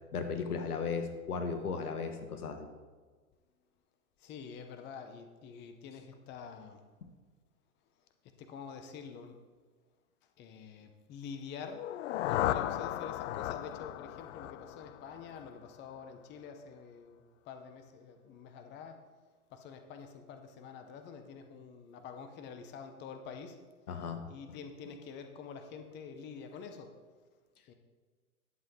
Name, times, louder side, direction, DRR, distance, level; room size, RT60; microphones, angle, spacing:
voice 1, 0.1-2.7 23.9-24.2 24.5-24.6, left 5 dB, 85° left, 7 dB, 1.4 m, -36 dB
voice 2, 4.2-6.8 8.5-9.4 10.4-11.8 12.2-17.2 17.5-18.9 19.5-23.5 24.3-26.9 27.7-27.8, left 6 dB, 25° left, 6 dB, 0.8 m, -47 dB
sound 1, 11.7-15.6, left 13 dB, 55° left, 0.5 m, -35 dB
11.0 x 7.5 x 3.7 m, 1.4 s
hypercardioid pair, 120°, 44 cm